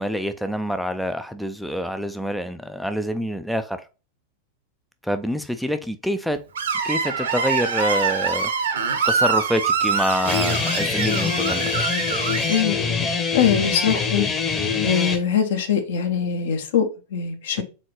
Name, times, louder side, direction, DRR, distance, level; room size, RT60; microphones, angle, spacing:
voice 1, 0.0-3.9 5.0-6.4 6.8-8.5 9.1-11.8 17.6-17.7, equal, ahead, 0.3 m, -26 dB
Screech, 6.5-12.6, right 5 dB, 65° right, 0.8 m, -24 dB
Guitar, 10.3-15.2, left 5 dB, 20° left, 0.9 m, -24 dB
voice 2, 12.5-14.3 14.8-17.6, left 7 dB, 60° left, 0.8 m, -23 dB
4.2 x 3.7 x 3.1 m
figure-of-eight pair, 90°, 0 cm